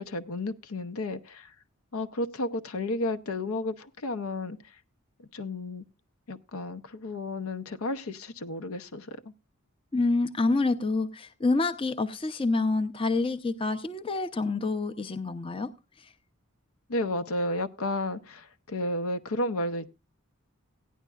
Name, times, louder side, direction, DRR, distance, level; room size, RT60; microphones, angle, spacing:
voice 1, 0.0-1.5 1.9-4.6 5.3-5.8 6.3-9.3 16.9-19.9, left 2 dB, 75° left, 0.7 m, -32 dB
voice 2, 9.9-15.7 16.0-16.1, left 3 dB, 25° left, 0.6 m, -27 dB
16.5 x 10.0 x 2.3 m
head